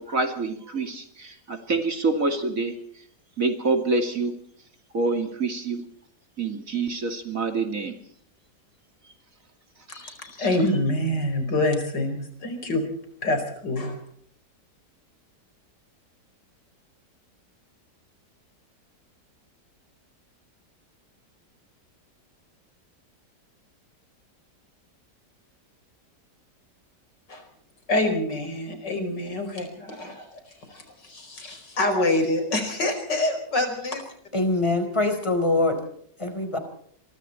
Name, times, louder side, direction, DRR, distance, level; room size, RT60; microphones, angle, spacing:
voice 1, 0.0-3.0 3.4-4.4 4.9-5.9 6.4-8.0, right 3 dB, 50° right, 6 dB, 2.9 m, -26 dB
voice 2, 9.9-12.8 13.2-14.0 27.3-27.4 27.9-30.3 30.7-34.0, left 1 dB, 80° left, 7 dB, 5.4 m, -26 dB
voice 3, 34.3-35.8 36.2-36.6, left 2 dB, 15° left, 7 dB, 4.3 m, -23 dB
27.0 x 23.5 x 4.4 m, 0.65 s
omnidirectional pair, 1.8 m